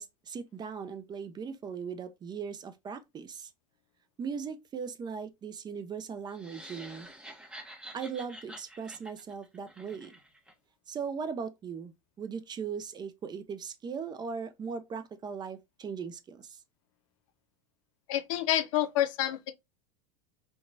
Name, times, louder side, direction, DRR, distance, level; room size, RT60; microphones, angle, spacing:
voice 1, 0.0-3.5 4.2-7.1 7.9-10.2 10.9-11.9 12.2-16.6, right 6 dB, 25° right, 0.4 m, -38 dB
sound 1, 6.3-10.5, right 1 dB, 5° right, 1.0 m, -48 dB
voice 2, 18.1-19.5, left 12 dB, 70° left, 0.4 m, -28 dB
2.9 x 2.2 x 2.5 m
hypercardioid pair, 90°, 18 cm